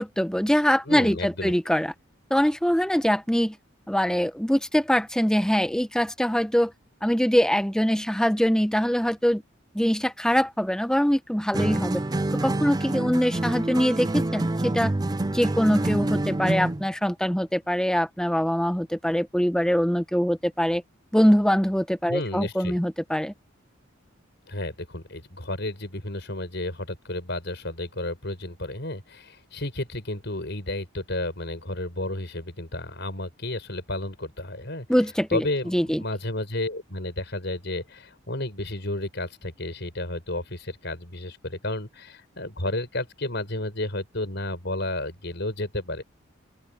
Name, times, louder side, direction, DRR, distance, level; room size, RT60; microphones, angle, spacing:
voice 1, 0.0-1.9 2.3-3.5 3.9-6.7 7.0-9.4 9.7-12.0 12.4-14.9 15.3-20.8 21.1-23.3 34.9-36.0, equal, 5° left, 0.8 m, -23 dB
voice 2, 0.8-1.5 22.1-22.8 24.5-34.9 35.3-46.0, left 1 dB, 60° left, 6.1 m, -32 dB
sound 1, 11.5-16.9, right 2 dB, 20° right, 0.5 m, -27 dB
open air
head